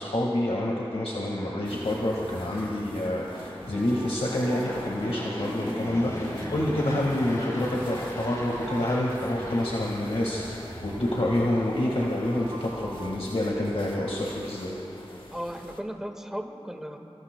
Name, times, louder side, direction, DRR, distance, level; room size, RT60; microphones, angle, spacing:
voice 1, 0.0-14.8, left 1 dB, 75° left, -3 dB, 1.7 m, -28 dB
Fixed-wing aircraft airplane, 0.8-11.9, equal, 35° left, 4.9 m, -38 dB
sound 1, 1.2-14.1, equal, 50° right, 3.9 m, -45 dB
sound 2, 1.6-15.8, left 1 dB, 55° left, 1.5 m, -47 dB
voice 2, 15.3-17.0, equal, 5° right, 3 dB, 1.6 m, -35 dB
26.0 x 24.5 x 2.2 m, 2.8 s
wide cardioid pair, 40°, 10 cm